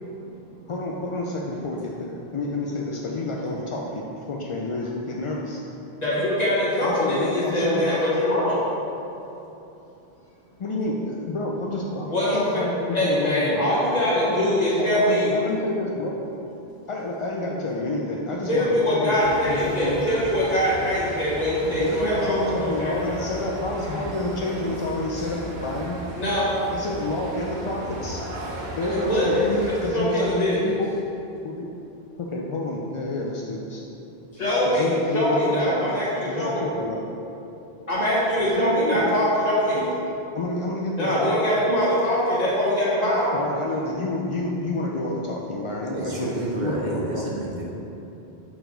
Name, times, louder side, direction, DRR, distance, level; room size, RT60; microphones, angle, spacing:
voice 1, 0.7-5.6 6.8-7.8 10.6-13.6 14.2-16.2 16.9-20.2 21.8-26.0 26.7-28.2 28.8-30.9 31.4-31.7 32.2-33.8 34.7-35.9 36.3-37.0 38.6-39.3 40.4-41.4 43.3-47.2, left 2 dB, 60° left, -2 dB, 0.3 m, -29 dB
voice 2, 6.0-8.6 12.1-12.6 12.9-15.4 18.5-23.2 26.2-26.5 28.9-30.8 34.3-36.6 37.9-39.9 41.0-43.4, equal, 40° left, -8 dB, 1.6 m, -23 dB
sound 1, 19.2-29.9, right 1 dB, 75° right, 1.1 m, -36 dB
voice 3, 45.9-47.7, right 2 dB, 50° right, -3 dB, 0.8 m, -29 dB
4.6 x 4.2 x 5.0 m, 2.9 s
omnidirectional pair, 1.0 m